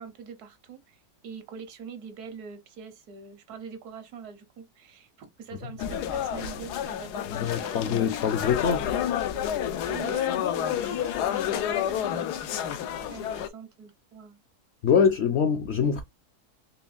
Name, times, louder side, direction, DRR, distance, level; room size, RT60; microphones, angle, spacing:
voice 1, 0.0-7.8 8.1-8.2 9.8-12.4 12.8-14.4, right 6 dB, 75° right, 1.4 m, -43 dB
sound 1, 5.8-13.5, left 10 dB, 90° left, 1.2 m, -29 dB
voice 2, 7.3-8.9 14.8-16.0, left 7 dB, 65° left, 0.6 m, -24 dB
4.4 x 3.0 x 2.3 m
omnidirectional pair, 1.7 m